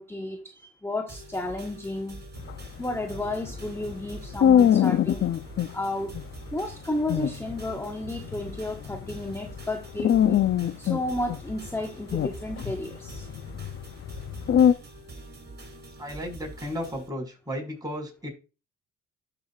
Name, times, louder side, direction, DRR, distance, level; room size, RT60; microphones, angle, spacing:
voice 1, 0.0-2.2 2.8-5.3 5.7-6.2 6.5-10.5 10.8-13.3, left 1 dB, 10° left, 5 dB, 1.4 m, -32 dB
sound 1, 1.1-17.1, right 2 dB, 30° right, 5.1 m, -44 dB
sound 2, 2.4-5.7 6.1-6.2 6.7-6.8 7.0-9.6 9.9-11.8 12.1-14.7, left 9 dB, 40° left, 0.6 m, -24 dB
voice 2, 16.0-18.3, equal, 10° right, 1 dB, 5.3 m, -34 dB
12.5 x 6.4 x 2.4 m, 0.31 s
supercardioid pair, 75°, 32 cm